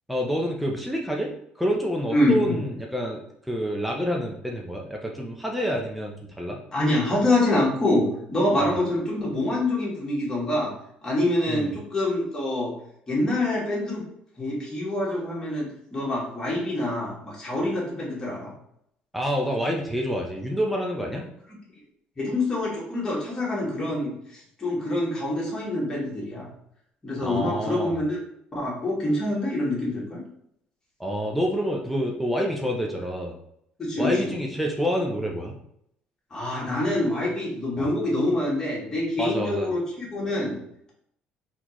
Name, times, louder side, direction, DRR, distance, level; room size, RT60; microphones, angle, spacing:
voice 1, 0.1-1.3 1.6-3.2 3.5-6.6 8.6-8.8 11.5-11.7 19.1-21.2 27.2-28.0 31.0-33.3 34.0-35.6 37.8-37.9 39.2-39.7, equal, ahead, -1 dB, 0.5 m, -27 dB
voice 2, 2.1-2.5 6.7-10.7 11.0-12.7 13.1-14.0 14.4-18.5 22.2-26.5 27.0-28.2 28.5-30.2 33.8-34.4 36.3-40.6, left 1 dB, 20° left, -5 dB, 1.4 m, -26 dB
4.1 x 3.0 x 3.0 m, 0.72 s
cardioid pair, 175°, 3 cm